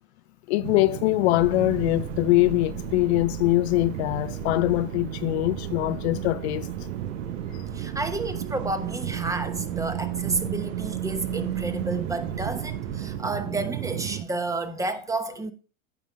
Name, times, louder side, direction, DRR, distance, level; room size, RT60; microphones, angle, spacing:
voice 1, 0.5-6.7 7.5-7.6, left 19 dB, 55° left, 0.5 m, -23 dB
sound 1, 0.6-14.2, right 12 dB, 65° right, 1.0 m, -33 dB
sound 2, 1.4-13.2, right 2 dB, 35° right, 3.7 m, -41 dB
voice 2, 7.7-15.5, right 2 dB, 10° right, 1.0 m, -31 dB
15.0 x 5.6 x 3.3 m
hypercardioid pair, 120°, 41 cm